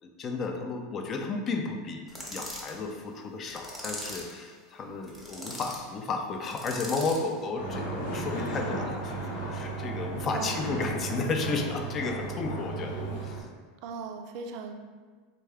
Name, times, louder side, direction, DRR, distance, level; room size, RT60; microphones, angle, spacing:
voice 1, 0.0-13.5, left 3 dB, 35° left, 3 dB, 0.4 m, -33 dB
sound 1, 2.1-2.8 3.5-4.4 5.0-5.8 6.5-7.3, left 1 dB, 10° left, 0.8 m, -40 dB
sound 2, 7.6-13.4, right 2 dB, 85° left, 0.9 m, -34 dB
voice 2, 10.3-10.8 13.8-14.7, right 5 dB, 60° right, 5 dB, 0.4 m, -38 dB
3.5 x 2.3 x 3.3 m, 1.4 s
supercardioid pair, 120°, 0 cm